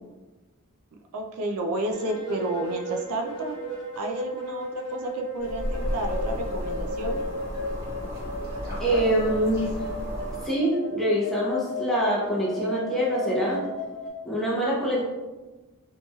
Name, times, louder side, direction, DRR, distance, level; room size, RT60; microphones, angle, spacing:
voice 1, 1.1-3.6 4.0-7.2, right 2 dB, 80° right, 2 dB, 0.4 m, -31 dB
sound 1, 1.9-14.1, left 1 dB, 65° left, 0.9 m, -35 dB
sound 2, 5.4-10.5, equal, 45° right, 1.1 m, -33 dB
voice 2, 8.8-9.7 10.4-13.6 14.2-15.1, right 1 dB, ahead, -6 dB, 0.7 m, -25 dB
2.9 x 2.7 x 2.2 m, 1.2 s
head